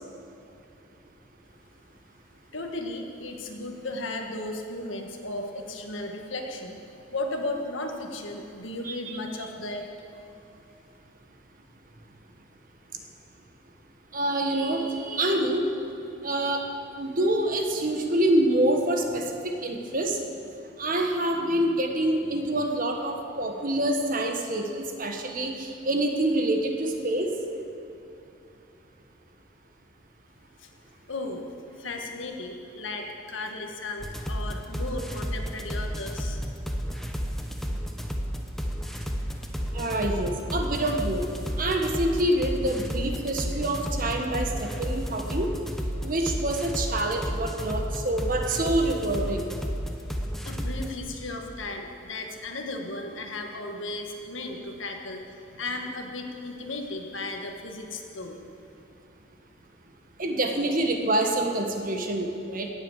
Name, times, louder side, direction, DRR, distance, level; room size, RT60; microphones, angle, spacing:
voice 1, 2.5-6.8 7.1-9.8 30.6-30.7 31.1-31.5 31.8-36.4 50.4-55.2 55.6-58.4, left 2 dB, 75° left, 3 dB, 1.7 m, -35 dB
voice 2, 8.8-9.2 14.1-15.7 16.2-16.6 17.0-20.2 20.8-27.3 39.7-41.3 41.6-45.5 46.0-49.4 60.2-62.7, right 1 dB, 45° right, 3 dB, 1.4 m, -26 dB
sound 1, 34.0-50.9, equal, ahead, 0.9 m, -32 dB
17.5 x 8.1 x 7.3 m, 2.7 s
head